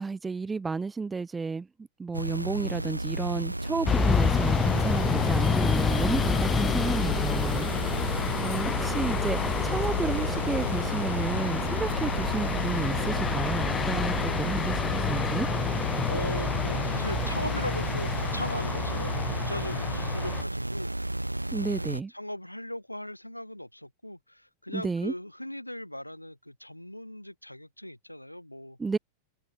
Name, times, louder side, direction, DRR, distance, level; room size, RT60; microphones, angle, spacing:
voice 1, 0.0-1.7 2.0-7.7 8.4-9.4 9.6-14.8 15.1-15.5 21.5-22.1 24.7-25.1 28.8-29.0, right 4 dB, 15° right, 1.7 m, -32 dB
sound 1, 2.1-22.0, right 1 dB, 85° right, 2.6 m, -33 dB
sound 2, 3.8-20.4, left 6 dB, 15° left, 1.4 m, -28 dB
voice 2, 16.1-20.9 21.4-28.8, left 1 dB, 90° left, 4.7 m, -39 dB
figure-of-eight pair, 90°, 0 cm